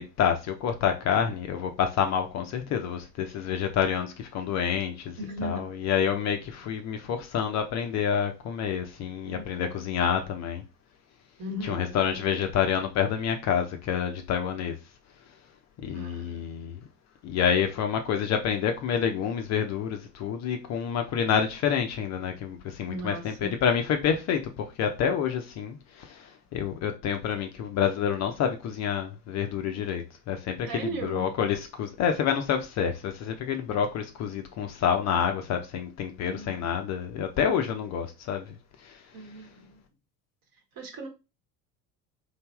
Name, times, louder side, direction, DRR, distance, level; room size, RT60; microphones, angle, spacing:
voice 1, 0.0-10.6 11.6-14.8 15.8-16.8 17.2-39.0, left 8 dB, 35° left, 0.5 m, -28 dB
voice 2, 5.2-5.6 9.3-9.9 11.4-12.3 15.9-16.4 22.9-23.5 30.7-31.3 36.2-36.7 39.1-39.8 40.5-41.1, right 1 dB, 45° right, 1.1 m, -38 dB
3.2 x 2.5 x 2.3 m
hypercardioid pair, 70°, 49 cm